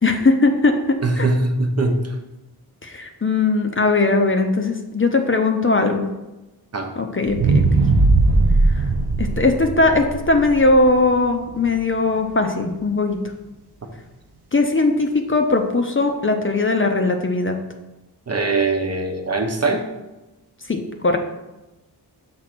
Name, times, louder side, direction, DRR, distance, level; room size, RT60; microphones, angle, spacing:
voice 1, 0.0-1.3 2.8-6.1 7.0-7.6 8.7-8.8 9.2-13.2 14.5-17.6 20.7-21.2, left 3 dB, 30° left, 4 dB, 0.7 m, -19 dB
voice 2, 1.0-2.1 6.7-6.9 18.3-19.8, right 2 dB, 40° right, 3 dB, 0.9 m, -21 dB
sound 1, 7.3-11.5 12.0-12.1, right 3 dB, 75° right, 0.8 m, -18 dB
6.0 x 3.7 x 6.0 m, 1.0 s
wide cardioid pair, 80°, 39 cm